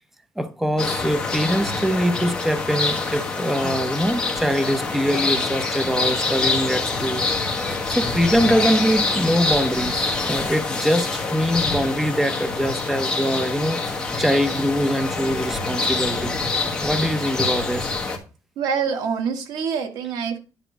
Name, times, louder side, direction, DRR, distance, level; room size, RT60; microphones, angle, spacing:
voice 1, 0.4-7.3 7.7-16.4 16.8-17.9, equal, 5° right, 0.6 m, -23 dB
sound 1, 0.8-18.2, left 3 dB, 10° left, 1.4 m, -25 dB
voice 2, 18.6-20.4, right 6 dB, 80° right, 1.5 m, -25 dB
10.0 x 3.8 x 6.1 m
cardioid pair, 165°, 6 cm